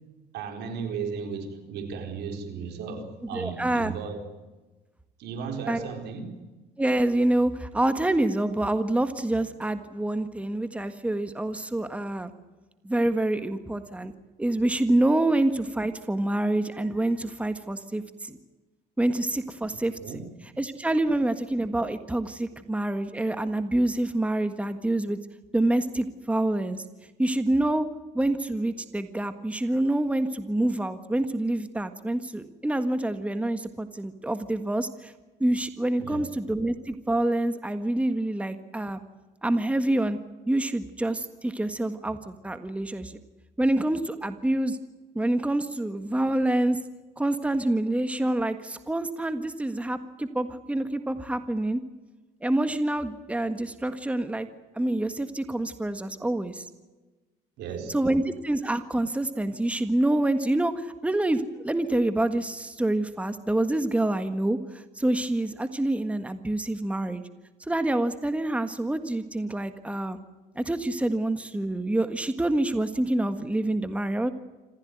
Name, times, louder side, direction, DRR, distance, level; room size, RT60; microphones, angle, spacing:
voice 1, 0.3-4.2 5.2-6.4 20.0-20.3 36.0-36.2 57.6-58.0, right 6 dB, 80° right, 4.5 m, -35 dB
voice 2, 3.3-3.9 5.7-5.9 6.8-12.3 12.8-14.1 14.4-18.4 19.0-20.2 20.6-25.2 25.5-26.8 27.2-27.9 28.1-35.1 35.4-39.0 39.4-40.2 40.5-43.2 43.6-44.8 45.1-46.8 47.2-51.8 52.4-54.5 54.7-56.7 57.9-67.2 67.6-70.2 70.5-74.3, right 1 dB, 5° right, 1.6 m, -27 dB
27.0 x 15.5 x 9.4 m
cardioid pair, 110°, 17 cm